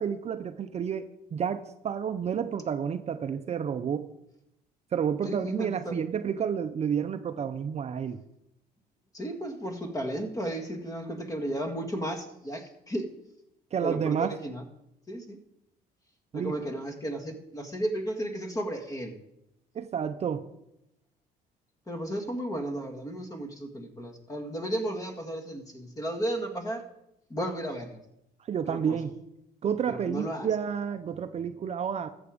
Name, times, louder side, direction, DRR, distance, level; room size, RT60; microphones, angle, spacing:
voice 1, 0.0-4.1 4.9-8.2 13.7-14.3 16.3-16.6 19.7-20.5 28.5-29.1 29.6-32.1, right 7 dB, 40° right, 9 dB, 0.6 m, -30 dB
voice 2, 5.2-6.0 9.1-13.1 13.8-14.6 15.1-15.4 16.3-19.1 21.9-26.8 27.3-28.0 28.6-29.0 29.9-30.5, right 1 dB, 20° left, 5 dB, 1.8 m, -34 dB
14.0 x 7.3 x 5.1 m, 0.84 s
cardioid pair, 110°, 17 cm